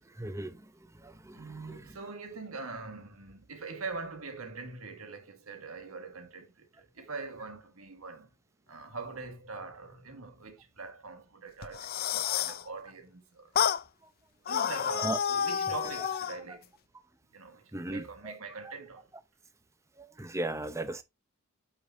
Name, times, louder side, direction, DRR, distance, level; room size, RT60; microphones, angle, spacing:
voice 1, 0.1-0.7 0.9-1.8 12.2-12.4 15.0-15.2 16.5-16.6 17.7-18.3 20.0-21.0, right 1 dB, 15° right, 0.7 m, -37 dB
voice 2, 1.3-8.3 8.7-13.5 14.5-16.7 17.3-19.1, right 4 dB, 90° right, 1.6 m, -43 dB
sound 1, 11.6-12.6 13.6-13.8 14.5-16.4, left 9 dB, 45° left, 0.4 m, -30 dB
8.6 x 5.0 x 2.6 m
head